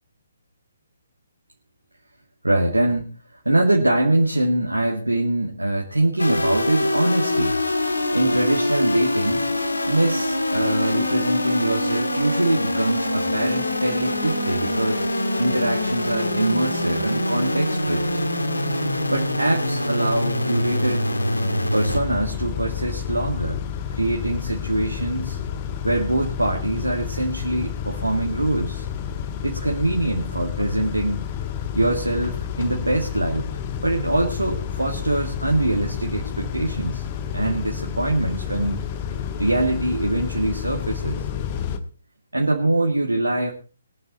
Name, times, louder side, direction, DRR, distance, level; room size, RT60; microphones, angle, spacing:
voice 1, 2.4-7.6 8.1-9.5 9.9-15.0 15.4-18.2 19.1-21.1 21.7-23.6 23.9-25.4 25.8-28.9 29.4-31.2 31.7-33.5 33.8-37.0 37.3-38.9 39.4-41.2 42.3-43.5, right 1 dB, 75° right, -1 dB, 2.3 m, -23 dB
sound 1, 6.2-22.0, left 1 dB, 75° left, 2.0 m, -24 dB
Car / Idling / Accelerating revving vroom, 21.9-41.8, left 8 dB, 25° left, 1.3 m, -30 dB
22.0 x 9.2 x 4.1 m, 0.35 s
figure-of-eight pair, 135°, 0 cm